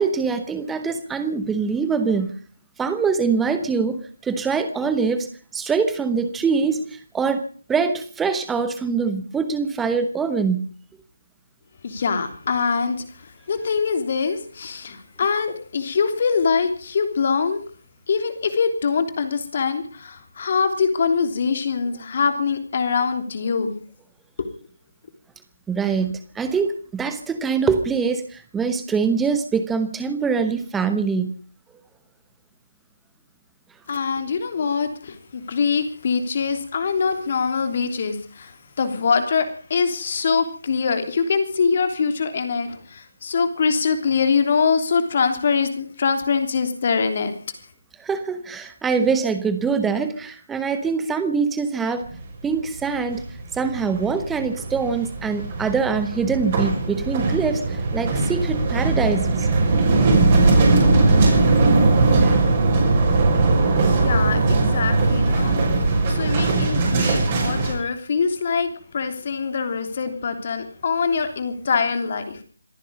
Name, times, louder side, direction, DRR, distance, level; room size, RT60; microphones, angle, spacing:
voice 1, 0.0-2.3 2.8-5.3 5.5-7.4 7.7-10.7 25.7-31.3 48.0-52.1 52.4-53.2 53.5-59.5 62.2-62.4, right 5 dB, 5° right, 10 dB, 1.0 m, -24 dB
voice 2, 11.8-13.0 13.5-17.6 18.1-23.8 33.9-47.3 63.8-65.6 66.1-68.7 68.9-72.4, left 5 dB, 40° left, 8 dB, 3.2 m, -23 dB
sound 1, 52.0-52.5 52.8-67.7, right 3 dB, 30° right, 6.1 m, -19 dB
27.0 x 10.0 x 5.3 m, 0.43 s
figure-of-eight pair, 155°, 0 cm